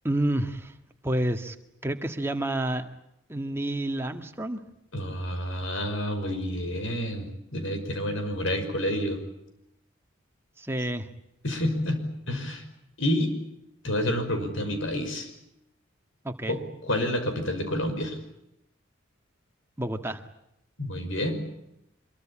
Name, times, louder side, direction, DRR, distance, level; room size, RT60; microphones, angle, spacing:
voice 1, 0.0-0.7 1.0-1.6 1.8-2.9 3.3-4.6 10.6-11.1 16.2-16.6 19.8-20.2, right 1 dB, 10° right, 5 dB, 1.8 m, -29 dB
voice 2, 4.9-7.3 7.5-9.2 11.4-12.0 12.3-12.6 13.0-13.3 13.8-15.3 16.5-18.2 20.8-21.5, left 1 dB, 75° left, 7 dB, 5.8 m, -29 dB
25.0 x 23.5 x 8.7 m, 0.80 s
head